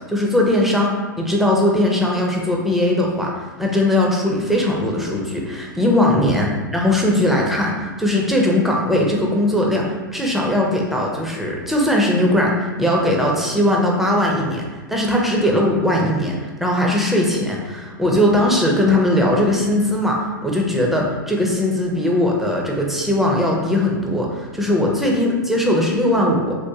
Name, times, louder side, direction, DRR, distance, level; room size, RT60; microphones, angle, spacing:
voice 1, 0.1-0.9 1.2-12.5 12.8-26.6, left 1 dB, ahead, -2 dB, 0.6 m, -19 dB
3.6 x 2.4 x 2.7 m, 1.4 s
hypercardioid pair, 110°, 11 cm